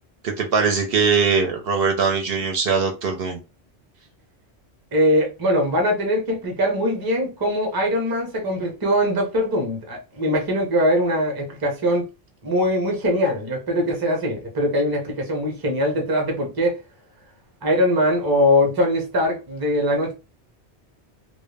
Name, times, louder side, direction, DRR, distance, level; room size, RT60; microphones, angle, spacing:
voice 1, 0.2-3.4, right 5 dB, 65° right, 0.7 m, -21 dB
voice 2, 4.9-12.1 12.4-16.8 17.6-20.1, equal, 25° right, 0.6 m, -21 dB
2.2 x 2.0 x 3.2 m
omnidirectional pair, 1.1 m